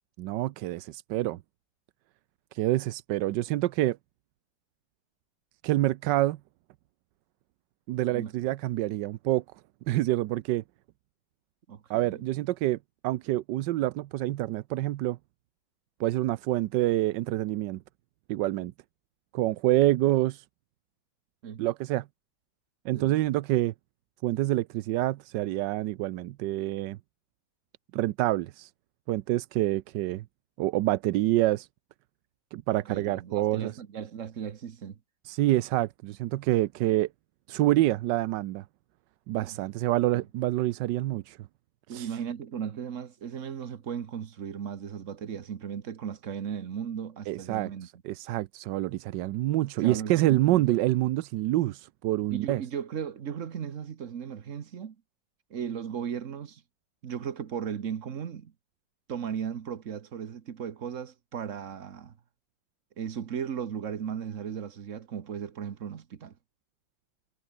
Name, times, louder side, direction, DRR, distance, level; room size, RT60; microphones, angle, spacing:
voice 1, 0.2-1.4 2.5-4.0 5.6-6.4 7.9-9.4 9.9-10.6 11.9-12.8 13.0-15.2 16.0-17.8 18.3-18.7 19.3-20.4 21.6-22.1 22.8-23.7 24.2-27.0 27.9-28.7 29.1-30.2 30.6-31.7 32.5-33.7 35.2-37.1 37.5-38.6 39.3-41.4 41.9-42.1 47.3-47.7 48.0-52.6, right 15 dB, 75° right, 1.2 m, -27 dB
voice 2, 11.7-12.2 21.4-21.6 22.9-23.2 32.7-35.0 39.4-39.6 40.1-40.3 41.9-47.9 49.8-50.7 52.3-55.0 55.5-56.6 57.0-58.5 59.1-62.1 63.0-66.3, right 8 dB, 45° right, 1.3 m, -36 dB
omnidirectional pair, 2.0 m